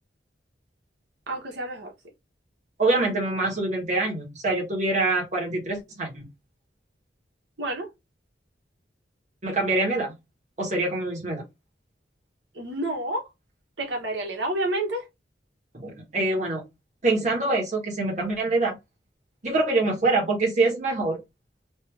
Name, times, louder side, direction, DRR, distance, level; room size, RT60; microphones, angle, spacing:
voice 1, 1.3-1.9 7.6-7.9 12.5-13.2 13.8-15.0, right 1 dB, 80° right, 1.4 m, -29 dB
voice 2, 2.8-6.3 9.4-10.1 10.6-11.4 15.7-16.6 17.0-18.8 19.4-21.2, right 2 dB, 40° right, 1.4 m, -25 dB
3.3 x 2.8 x 3.3 m
head